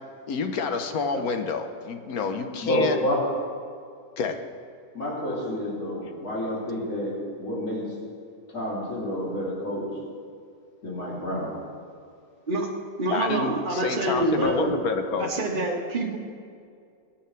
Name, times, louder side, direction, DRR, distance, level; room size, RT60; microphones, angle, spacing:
voice 1, 0.3-3.0 4.2-4.4 13.1-15.3, left 5 dB, 75° left, 7 dB, 1.4 m, -28 dB
voice 2, 2.6-3.2 4.9-7.8 8.5-9.9 10.8-11.6, equal, 55° left, -6 dB, 3.6 m, -29 dB
voice 3, 13.0-14.7 15.2-16.2, right 2 dB, 35° right, -1 dB, 1.7 m, -26 dB
23.5 x 8.8 x 3.3 m, 2.3 s
omnidirectional pair, 1.6 m